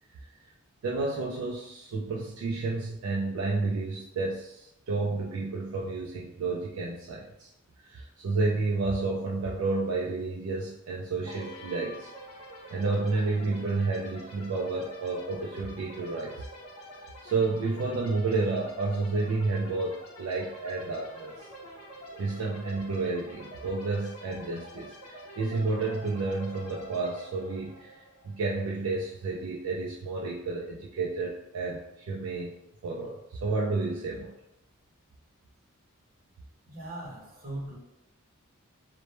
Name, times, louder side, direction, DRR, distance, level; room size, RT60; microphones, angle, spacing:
voice 1, 0.8-7.5 7.8-12.1 12.7-16.5 17.2-21.5 22.2-32.6 32.8-34.3, right 3 dB, 65° right, -3 dB, 0.3 m, -31 dB
sound 1, 11.3-28.9, equal, 85° left, 0.6 m, -47 dB
voice 2, 36.7-37.8, right 1 dB, 40° right, -4 dB, 0.7 m, -39 dB
2.1 x 2.0 x 2.9 m, 0.82 s
head